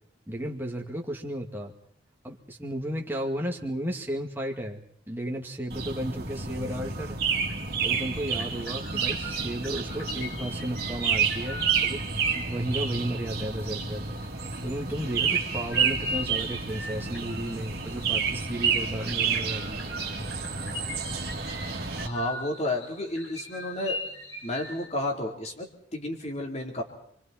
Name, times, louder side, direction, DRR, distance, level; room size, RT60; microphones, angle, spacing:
voice 1, 0.3-1.7 2.2-7.2 7.8-12.0 12.3-14.1 14.6-19.8, right 1 dB, 10° right, 0 dB, 2.4 m, -34 dB
sound 1, 5.7-22.1, right 6 dB, 55° right, 2.9 m, -30 dB
sound 2, 7.5-7.8 8.0-24.9, left 2 dB, 80° left, 6.9 m, -42 dB
voice 2, 22.0-24.0 24.4-26.8, left 1 dB, 35° left, 1 dB, 3.9 m, -31 dB
29.0 x 24.5 x 4.5 m, 0.67 s
head